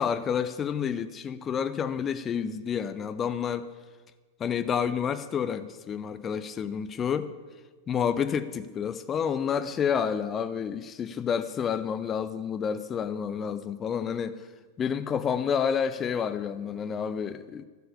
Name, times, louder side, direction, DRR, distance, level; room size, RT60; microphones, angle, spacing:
voice 1, 0.0-3.7 4.4-7.3 7.9-14.4 14.8-17.7, left 7 dB, 25° left, 12 dB, 0.5 m, -29 dB
12.0 x 6.9 x 8.4 m, 1.3 s
figure-of-eight pair, 90°, 0 cm